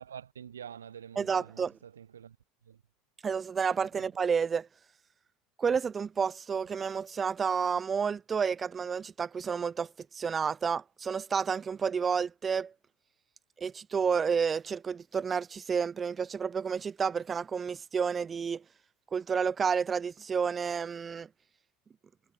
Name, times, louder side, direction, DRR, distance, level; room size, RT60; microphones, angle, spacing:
voice 1, 0.0-2.4 2.7-2.8 4.0-4.1, right 8 dB, 75° right, 1.2 m, -47 dB
voice 2, 1.2-1.7 3.2-4.7 5.6-12.7 13.6-18.6 19.1-21.3, right 6 dB, 25° right, 0.6 m, -30 dB
figure-of-eight pair, 70°, 0 cm